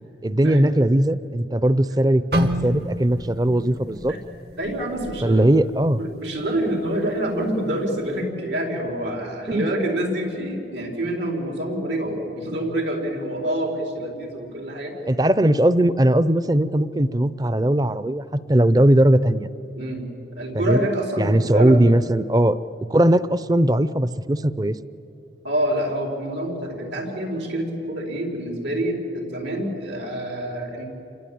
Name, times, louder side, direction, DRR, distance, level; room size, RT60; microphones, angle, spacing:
voice 1, 0.2-4.2 5.2-6.0 9.5-9.7 15.1-19.5 20.5-20.9 21.2-22.6 22.9-24.8, right 1 dB, 20° right, 15 dB, 0.6 m, -19 dB
sound 1, 2.3-6.3 6.7-7.0 7.6-7.9, equal, 60° right, 1.5 m, -30 dB
voice 2, 4.6-5.5 6.0-14.9 15.4-15.5 19.7-20.1 20.4-21.9 25.4-30.9, right 1 dB, 85° right, 1 dB, 4.7 m, -27 dB
28.0 x 23.5 x 8.7 m, 2.9 s
head